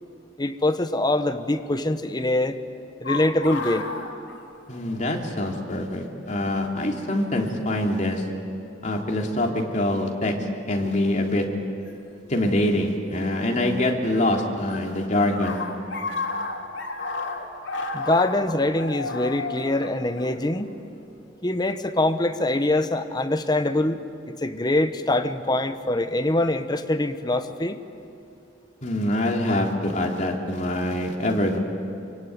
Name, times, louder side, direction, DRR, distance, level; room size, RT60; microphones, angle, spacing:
voice 1, 0.4-2.6 3.0-3.9 17.9-20.7 21.4-24.0 24.4-27.8, left 1 dB, 20° left, 8 dB, 1.0 m, -24 dB
sound 1, 3.0-5.1 5.4-5.5 6.5-6.8 7.8-8.0 8.7-9.2 11.9-12.0 13.3-14.2 14.4-21.0, left 3 dB, 90° left, 3.1 m, -33 dB
voice 2, 4.7-8.2 8.8-10.4 10.7-11.5 12.3-15.6 28.8-31.6, left 1 dB, 40° left, 1 dB, 3.1 m, -24 dB
26.0 x 24.5 x 9.5 m, 2.6 s
head